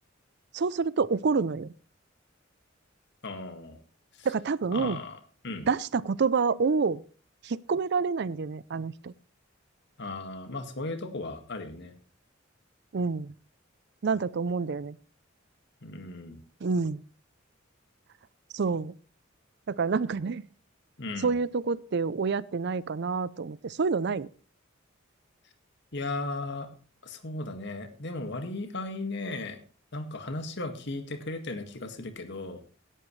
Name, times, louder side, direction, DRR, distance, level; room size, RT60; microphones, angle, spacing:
voice 1, 0.5-1.7 4.2-5.0 5.7-7.0 7.4-9.1 12.9-13.3 14.0-15.0 16.6-17.0 18.5-18.9 19.7-20.4 21.2-24.3, right 5 dB, 55° right, 20 dB, 0.5 m, -28 dB
voice 2, 3.2-3.8 4.2-4.3 4.7-5.2 5.4-5.7 10.0-11.9 15.8-16.4 21.0-21.3 25.9-26.7 27.0-29.6 29.9-32.6, left 2 dB, 60° left, 7 dB, 1.9 m, -36 dB
17.0 x 11.0 x 3.2 m, 0.38 s
head